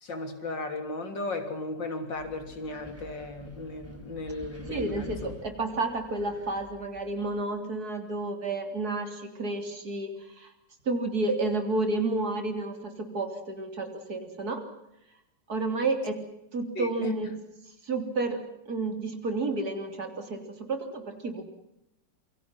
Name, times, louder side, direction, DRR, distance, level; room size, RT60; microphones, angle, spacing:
voice 1, 0.0-5.3 16.8-17.3, left 2 dB, 85° left, 6 dB, 4.1 m, -35 dB
Wind, 2.1-7.4, equal, 5° right, 3.5 m, -48 dB
voice 2, 4.7-10.5 10.9-14.6 15.5-16.2 16.5-17.3 17.8-21.4, right 2 dB, 55° right, 6 dB, 3.9 m, -31 dB
27.5 x 24.5 x 6.0 m, 0.83 s
omnidirectional pair, 1.9 m